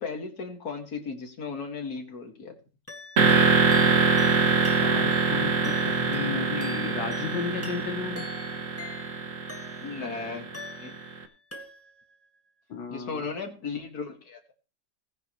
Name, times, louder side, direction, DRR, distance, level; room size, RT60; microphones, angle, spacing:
voice 1, 0.0-2.6 9.8-10.9 12.9-14.5, left 4 dB, 55° left, 4 dB, 2.6 m, -36 dB
sound 1, 2.9-10.1 10.5-11.2 11.5-12.1, left 2 dB, 10° left, 1.6 m, -44 dB
sound 2, 3.2-10.9, right 4 dB, 50° right, 1.7 m, -24 dB
voice 2, 4.8-8.3 12.7-13.3, left 6 dB, 80° left, 7 dB, 1.8 m, -34 dB
18.0 x 10.5 x 3.1 m, 0.34 s
omnidirectional pair, 1.9 m